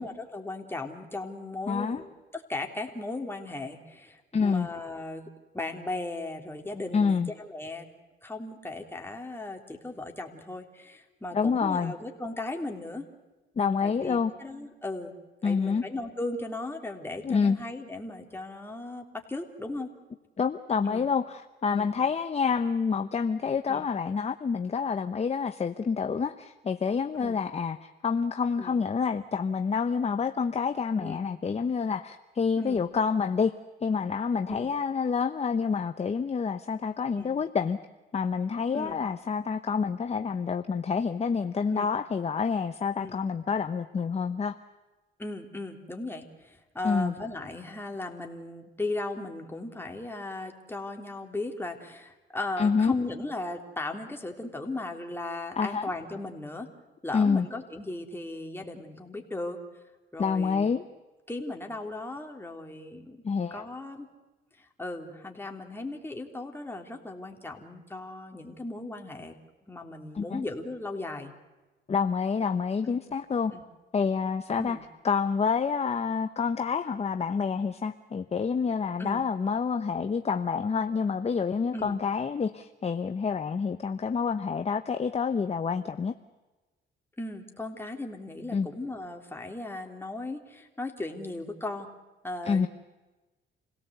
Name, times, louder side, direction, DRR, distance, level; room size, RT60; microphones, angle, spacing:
voice 1, 0.0-5.3 5.5-7.9 8.2-13.1 13.8-15.1 15.4-19.9 20.8-21.1 21.7-21.9 23.7-23.9 27.2-27.4 28.6-28.8 31.0-31.3 32.6-32.8 34.5-34.7 37.1-37.3 38.7-39.0 41.7-41.9 43.0-43.2 45.2-56.7 57.0-59.6 60.1-60.7 61.3-63.2 63.5-64.1 64.6-69.3 69.7-71.3 72.8-73.0 73.5-73.6 74.5-74.8 79.0-79.3 81.7-82.0 87.2-91.9 92.2-92.7, left 2 dB, 10° left, 2 dB, 3.4 m, -37 dB
voice 2, 1.7-2.0 4.3-4.7 6.9-7.3 11.3-11.9 13.6-14.3 15.4-15.8 17.2-17.6 20.4-33.5 33.8-37.8 38.1-44.5 46.8-47.1 52.6-52.9 55.6-55.9 57.1-57.5 60.2-60.8 63.2-63.6 70.1-70.4 71.9-73.5 73.9-74.8 75.0-86.1 88.5-88.7 92.4-92.7, left 5 dB, 30° left, 9 dB, 0.9 m, -28 dB
27.5 x 17.5 x 8.1 m, 1.2 s
cardioid pair, 90°, 20 cm